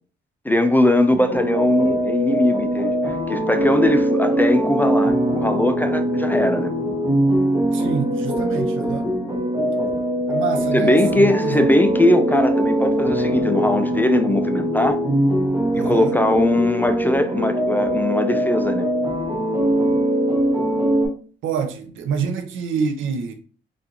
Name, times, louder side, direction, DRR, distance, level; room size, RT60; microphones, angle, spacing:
voice 1, 0.4-6.7 10.7-15.0 15.7-18.9, left 1 dB, 10° left, 0.3 m, -20 dB
sound 1, 1.1-21.1, equal, 15° right, 1.3 m, -21 dB
voice 2, 7.7-9.1 10.3-11.7 15.7-16.2 21.4-23.3, right 6 dB, 80° right, 0.6 m, -27 dB
3.7 x 2.5 x 2.8 m
cardioid pair, 90°, 20 cm